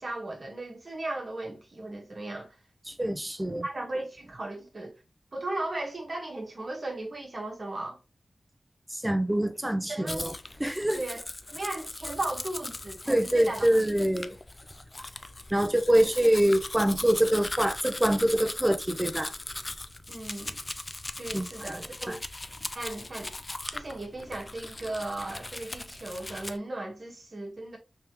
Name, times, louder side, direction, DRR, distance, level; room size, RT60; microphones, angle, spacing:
voice 1, 0.0-2.5 3.6-4.9 5.3-8.0 9.9-10.2 10.9-11.2 11.5-13.7 20.1-20.6 21.2-22.2 22.7-23.4 23.6-27.8, right 2 dB, 45° right, 1.3 m, -36 dB
voice 2, 2.9-3.6 8.9-10.3 10.6-11.0 13.1-14.4 15.5-19.3 21.3-21.8 22.1-22.2, right 1 dB, 10° right, 0.6 m, -25 dB
Domestic sounds home sounds, 10.1-26.6, left 2 dB, 30° left, 0.4 m, -39 dB
3.4 x 3.1 x 2.9 m
wide cardioid pair, 75°, 0 cm